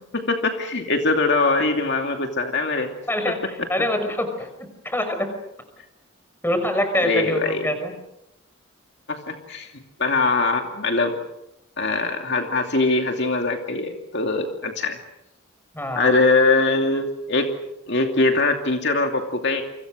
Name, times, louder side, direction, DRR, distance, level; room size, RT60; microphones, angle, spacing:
voice 1, 0.1-2.9 3.3-3.4 6.9-7.7 9.1-9.7 10.0-11.2 11.8-15.0 16.0-17.5 17.9-19.6, left 3 dB, 55° left, 3 dB, 2.6 m, -22 dB
voice 2, 3.1-4.5 4.8-5.3 6.4-7.9 15.7-16.1, left 1 dB, 10° left, 7 dB, 5.7 m, -25 dB
30.0 x 25.5 x 6.5 m, 0.84 s
head